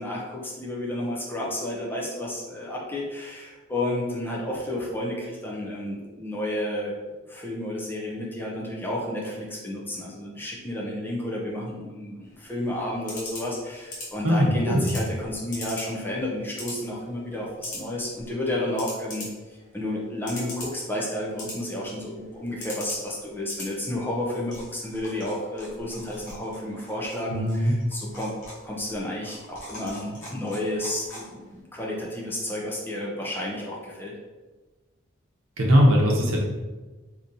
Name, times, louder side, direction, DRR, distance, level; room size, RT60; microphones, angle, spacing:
voice 1, 0.0-7.0 7.3-34.1, left 1 dB, 10° left, -4 dB, 0.5 m, -31 dB
sound 1, 12.2-31.6, left 1 dB, 35° left, 1.1 m, -43 dB
voice 2, 14.2-14.9 27.3-27.7 35.6-36.4, equal, 80° right, -1 dB, 0.8 m, -20 dB
3.8 x 2.8 x 2.6 m, 1.2 s
head